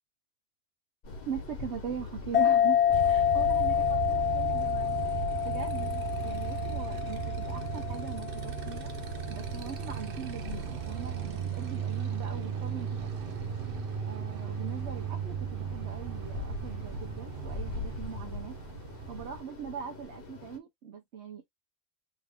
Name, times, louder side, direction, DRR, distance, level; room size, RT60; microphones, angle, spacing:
sound 1, 1.0-20.6, left 4 dB, 60° left, 1.2 m, -44 dB
voice 1, 1.3-2.8 3.1-3.7 4.1-8.9 9.3-13.0 14.0-18.6 19.1-21.4, right 7 dB, 85° right, 1.1 m, -41 dB
sound 2, 2.3-9.4, left 9 dB, 85° left, 1.0 m, -28 dB
Motorcycle, 2.9-19.4, right 9 dB, 60° right, 0.7 m, -36 dB
3.4 x 2.3 x 3.4 m
omnidirectional pair, 1.1 m